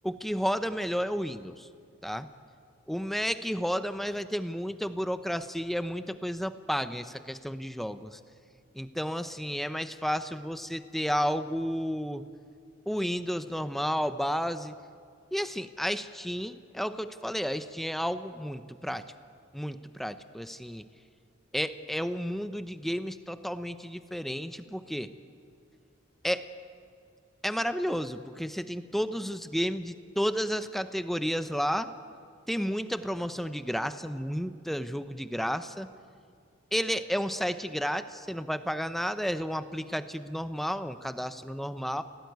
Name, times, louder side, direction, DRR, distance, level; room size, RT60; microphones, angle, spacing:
voice 1, 0.0-1.7 2.0-2.3 2.9-8.2 8.7-12.2 12.9-14.7 15.3-19.0 19.5-20.8 21.5-25.1 26.2-26.5 27.4-31.9 32.5-35.9 36.7-42.0, equal, ahead, 10 dB, 0.7 m, -32 dB
29.0 x 18.0 x 9.4 m, 2.2 s
head